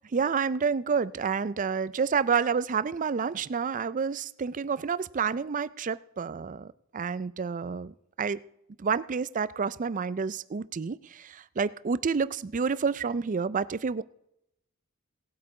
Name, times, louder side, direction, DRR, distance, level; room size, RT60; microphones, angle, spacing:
voice 1, 0.1-7.9 8.2-8.4 8.8-14.0, right 5 dB, 35° right, 17 dB, 0.4 m, -29 dB
18.0 x 8.3 x 4.9 m, 0.79 s
head